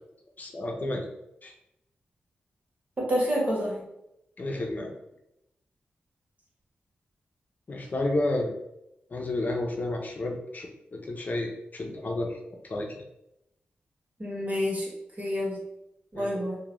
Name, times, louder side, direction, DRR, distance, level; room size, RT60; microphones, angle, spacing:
voice 1, 0.4-1.0 1.4-1.5 4.4-4.9 7.7-8.5 9.1-12.4 12.7-12.9 16.1-16.3, left 2 dB, 45° left, 2 dB, 0.6 m, -31 dB
voice 2, 3.0-3.8 14.2-14.9 15.2-15.6 16.1-16.6, equal, 40° right, -3 dB, 1.1 m, -28 dB
2.4 x 2.2 x 3.0 m, 0.84 s
cardioid pair, 55°, 4 cm